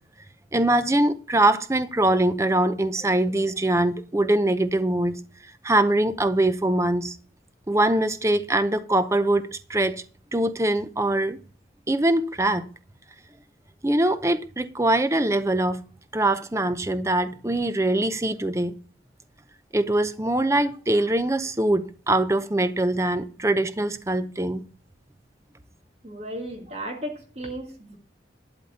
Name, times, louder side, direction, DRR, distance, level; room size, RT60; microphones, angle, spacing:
voice 1, 0.5-5.2 5.6-7.2 7.7-10.0 10.3-11.4 11.9-12.7 13.8-15.8 16.1-18.7 19.7-24.6, right 1 dB, 15° right, 0.6 m, -23 dB
voice 2, 26.0-28.0, right 1 dB, 35° right, 1.7 m, -35 dB
11.5 x 4.1 x 7.9 m
head